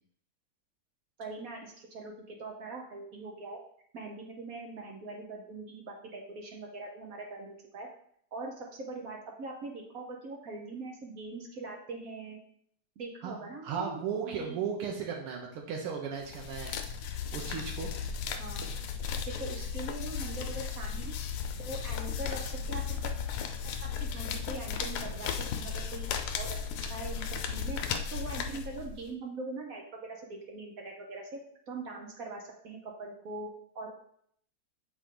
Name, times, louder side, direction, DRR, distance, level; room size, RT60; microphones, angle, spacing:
voice 1, 1.2-3.6 3.9-7.9 8.3-12.4 13.0-14.6 18.4-18.7 19.3-21.1 21.6-23.1 23.6-27.8 28.1-31.4 31.7-34.0, right 3 dB, 55° right, 1 dB, 1.0 m, -42 dB
voice 2, 13.2-16.7 17.3-17.9, right 6 dB, 90° right, 0 dB, 1.8 m, -36 dB
sound 1, 16.2-29.1, left 6 dB, 80° left, 1.5 m, -35 dB
7.8 x 3.7 x 3.8 m, 0.66 s
omnidirectional pair, 2.4 m